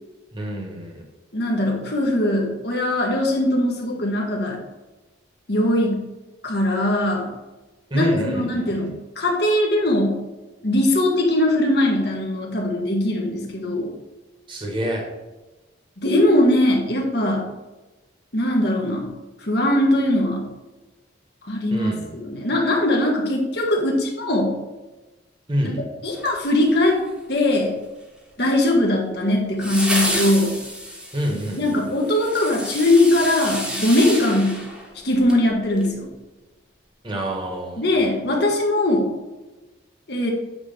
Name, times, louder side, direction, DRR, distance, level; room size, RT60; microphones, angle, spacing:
voice 1, 0.3-1.0 7.9-8.9 14.5-15.1 21.7-22.1 25.5-25.8 31.1-31.8 37.0-37.9, equal, 25° right, 0 dB, 1.4 m, -27 dB
voice 2, 1.3-4.6 5.5-6.0 6.4-7.3 7.9-10.2 10.6-13.9 16.0-17.5 18.3-19.1 19.4-20.5 21.4-21.9 22.2-24.5 25.6-25.7 26.0-27.0 27.3-27.7 28.4-30.5 31.6-34.6 35.0-36.1 37.8-39.1 40.1-40.3, left 1 dB, 55° left, 0 dB, 1.5 m, -20 dB
sound 1, 26.2-27.1 29.6-35.4 35.8-35.9, equal, 5° right, 1.3 m, -30 dB
8.6 x 3.3 x 5.9 m, 1.1 s
head